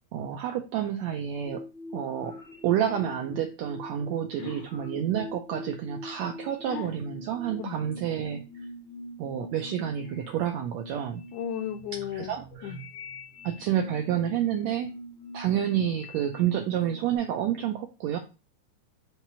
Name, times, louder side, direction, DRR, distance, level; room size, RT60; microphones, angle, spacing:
voice 1, 0.1-1.6 1.9-2.4 2.6-8.4 9.2-11.2 12.1-12.7 13.4-14.9 15.3-18.2, right 10 dB, 90° right, 1.5 m, -29 dB
sound 1, 1.4-17.2, left 1 dB, 55° left, 0.9 m, -44 dB
voice 2, 11.3-12.4 12.6-12.8, left 10 dB, 80° left, 1.8 m, -35 dB
5.8 x 3.0 x 5.4 m
omnidirectional pair, 3.8 m